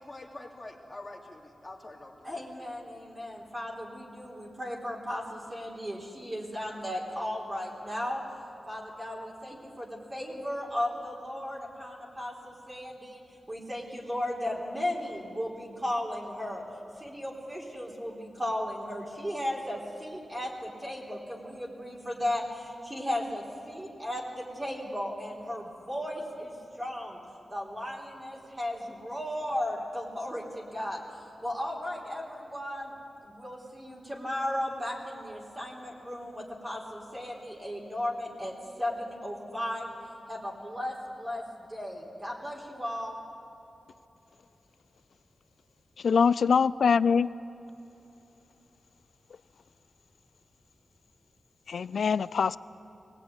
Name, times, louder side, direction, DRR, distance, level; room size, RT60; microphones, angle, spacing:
voice 1, 0.0-2.4, left 2 dB, 20° left, -2 dB, 3.0 m, -45 dB
voice 2, 2.2-8.2 8.7-13.2 13.5-16.6 17.0-27.2 27.5-32.9 33.2-39.9 40.3-43.2, left 1 dB, 20° right, -4 dB, 3.7 m, -35 dB
voice 3, 46.0-47.3 51.7-52.6, left 6 dB, 80° left, 18 dB, 0.4 m, -23 dB
22.5 x 18.5 x 9.6 m, 2.8 s
wide cardioid pair, 85°, 0 cm